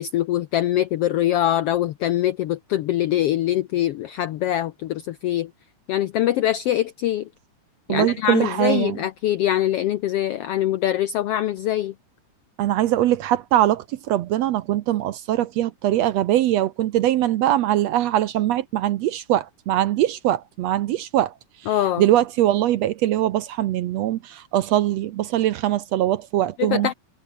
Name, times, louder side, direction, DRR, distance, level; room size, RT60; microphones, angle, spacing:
voice 1, 0.0-5.5 5.9-7.2 7.9-11.9 21.7-22.0 26.6-26.9, left 12 dB, 80° left, 1.3 m, -23 dB
voice 2, 7.9-9.0 12.6-21.3 22.0-26.9, right 13 dB, 70° right, 1.7 m, -22 dB
omnidirectional pair, 3.6 m